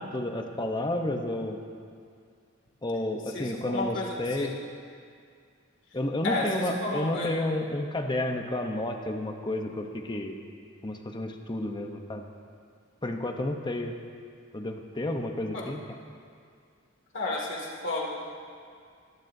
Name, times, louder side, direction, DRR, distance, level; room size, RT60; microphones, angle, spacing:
voice 1, 0.0-1.6 2.8-4.5 5.9-10.3 10.8-12.2 13.0-13.9 14.5-15.8, left 1 dB, 20° left, 4 dB, 0.9 m, -31 dB
voice 2, 3.3-4.5 6.2-7.3 15.5-15.7 17.1-18.1, left 2 dB, 65° left, -2 dB, 2.4 m, -32 dB
24.5 x 12.5 x 2.7 m, 2.2 s
head